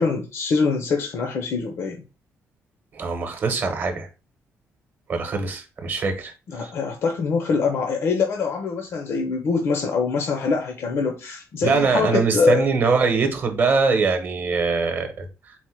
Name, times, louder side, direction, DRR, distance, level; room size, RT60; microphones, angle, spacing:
voice 1, 0.0-2.0 6.5-12.7, left 4 dB, 55° left, 0.6 m, -24 dB
voice 2, 2.9-4.1 5.1-6.7 11.6-15.5, right 4 dB, 40° right, 0.9 m, -23 dB
4.3 x 2.1 x 4.4 m
cardioid pair, 155°, 5 cm